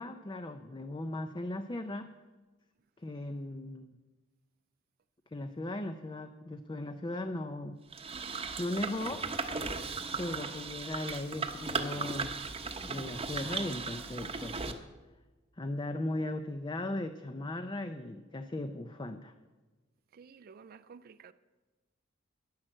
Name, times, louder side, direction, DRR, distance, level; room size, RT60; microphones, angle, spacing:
voice 1, 0.0-2.1 3.0-4.0 5.3-7.8 8.6-9.2 10.2-12.3 12.9-14.8 15.6-19.3, left 1 dB, 20° left, 0.5 m, -37 dB
sound 1, 7.9-14.7, right 4 dB, 30° right, 0.9 m, -37 dB
voice 2, 20.1-21.3, right 6 dB, 45° right, 0.4 m, -52 dB
10.5 x 10.0 x 7.7 m
head